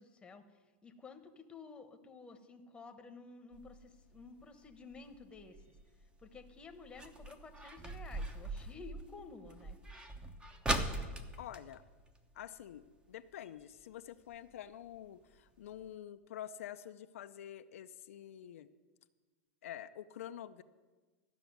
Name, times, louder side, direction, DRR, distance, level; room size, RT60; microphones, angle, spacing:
voice 1, 0.0-5.8 6.2-9.8, left 4 dB, 15° left, 6 dB, 1.1 m, -53 dB
sound 1, 3.5-12.8 13.1-13.2 13.5-13.8 14.3-14.4 15.0-15.1 15.3-15.4 15.8-15.9, right 1 dB, 10° right, 0.9 m, -41 dB
voice 2, 11.4-11.8 12.3-18.7 19.6-20.6, left 11 dB, 85° left, 9 dB, 0.5 m, -48 dB
13.0 x 6.1 x 9.3 m, 1.3 s
supercardioid pair, 135°, 7 cm